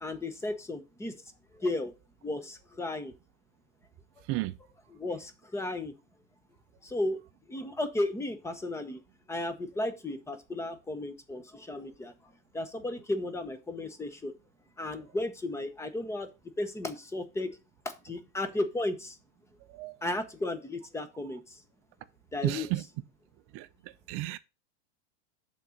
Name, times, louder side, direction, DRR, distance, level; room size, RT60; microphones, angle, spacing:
voice 1, 0.0-1.1 1.5-1.9 2.2-3.1 4.9-5.9 6.8-7.2 7.5-9.0 9.3-12.1 12.5-14.3 14.8-16.3 16.6-17.6 17.8-19.2 20.0-21.6 22.3-22.7, left 2 dB, 10° left, 0.8 m, -34 dB
voice 2, 22.4-22.8 23.5-24.4, right 17 dB, 35° right, 0.5 m, -33 dB
6.5 x 3.8 x 6.3 m
supercardioid pair, 140°, 36 cm